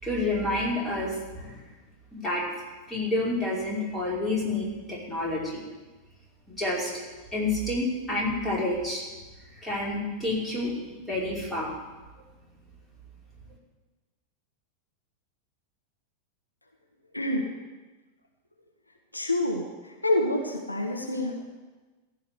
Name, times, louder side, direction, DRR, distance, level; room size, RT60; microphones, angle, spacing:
voice 1, 0.0-1.6 2.1-2.4 2.9-5.6 6.5-6.9 7.3-9.0 9.6-10.8 11.1-11.7, left 2 dB, 10° left, -5 dB, 5.3 m, -29 dB
voice 2, 17.1-17.5 19.1-21.5, left 1 dB, 85° left, 1 dB, 1.6 m, -28 dB
15.0 x 5.8 x 9.8 m, 1.2 s
figure-of-eight pair, 90°, 0 cm